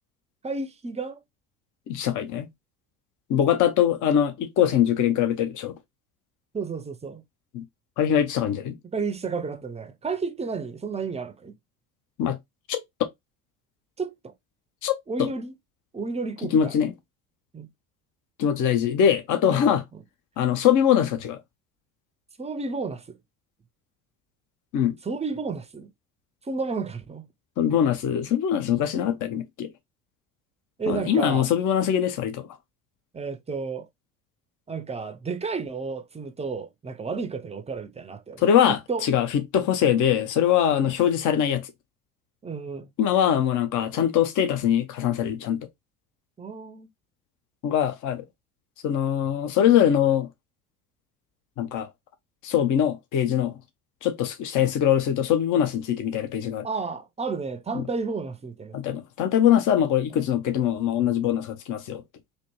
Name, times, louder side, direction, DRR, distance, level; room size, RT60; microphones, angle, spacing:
voice 1, 0.4-1.2 6.5-7.2 8.8-11.5 14.0-14.3 15.1-15.5 15.9-16.8 17.5-17.7 19.4-20.0 22.4-23.2 25.0-25.9 26.5-27.2 30.8-31.5 33.1-33.9 34.7-39.1 40.7-40.9 42.4-42.9 46.4-46.9 56.6-58.8 60.1-60.2, right 4 dB, 15° right, 0.7 m, -32 dB
voice 2, 1.9-2.5 3.3-5.7 7.5-7.6 8.0-8.8 12.2-12.4 12.7-12.8 14.8-14.9 15.2-15.3 16.5-16.9 18.4-19.8 20.4-21.4 24.7-24.9 27.6-29.7 30.9-32.5 38.4-41.6 43.0-45.6 47.6-48.2 48.8-50.3 51.6-51.9 52.4-53.5 54.0-56.7 57.7-57.8 58.7-62.0, left 9 dB, 45° left, 1.0 m, -22 dB
4.2 x 2.8 x 3.1 m
figure-of-eight pair, 65°, 42 cm